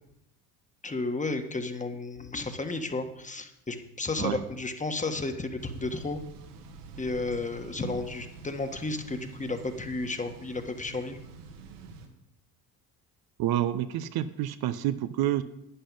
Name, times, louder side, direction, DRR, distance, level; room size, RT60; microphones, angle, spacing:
voice 1, 0.8-6.2 7.0-11.2, left 3 dB, 15° left, 7 dB, 1.6 m, -33 dB
Thunder / Bicycle, 5.6-12.1, right 4 dB, 75° right, 2.1 m, -47 dB
voice 2, 13.4-15.4, right 12 dB, 50° right, 12 dB, 0.8 m, -28 dB
11.0 x 10.0 x 5.5 m, 0.82 s
hypercardioid pair, 65°, 47 cm